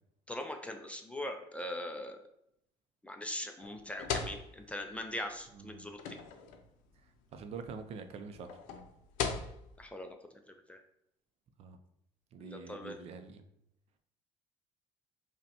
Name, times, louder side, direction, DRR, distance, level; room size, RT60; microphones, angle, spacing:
voice 1, 0.3-2.2 3.0-6.0 9.8-10.1 10.7-10.8 12.4-12.9, left 1 dB, 10° left, 4 dB, 0.4 m, -41 dB
sound 1, 3.6-9.8, left 6 dB, 85° left, 0.5 m, -40 dB
voice 2, 5.5-5.9 7.0-8.6 11.6-11.8 12.3-13.5, right 5 dB, 55° right, 7 dB, 0.4 m, -46 dB
5.2 x 2.2 x 2.8 m, 0.75 s
cardioid pair, 115°, 13 cm